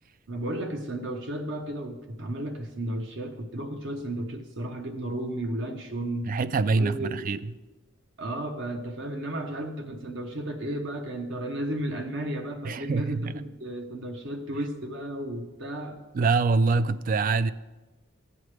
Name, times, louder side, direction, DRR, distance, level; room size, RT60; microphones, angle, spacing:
voice 1, 0.3-6.3 6.8-7.4 8.2-16.0, right 1 dB, 60° right, 0.9 m, -33 dB
voice 2, 6.3-7.4 12.6-13.4 16.1-17.5, right 4 dB, 40° right, 0.3 m, -25 dB
14.5 x 9.2 x 3.3 m
head